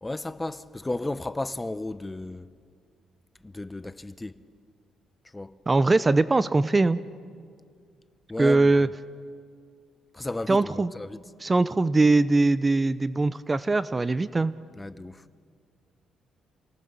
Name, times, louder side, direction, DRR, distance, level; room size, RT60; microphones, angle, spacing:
voice 1, 0.0-2.5 3.4-4.4 5.3-5.5 8.3-8.7 10.1-10.6 11.0-11.2 14.8-15.2, left 2 dB, 15° left, 0.7 m, -33 dB
voice 2, 5.7-7.0 8.4-8.9 10.5-10.9 11.4-14.5, right 3 dB, 25° right, 0.6 m, -21 dB
28.0 x 18.5 x 6.9 m
cardioid pair, 90°, 0 cm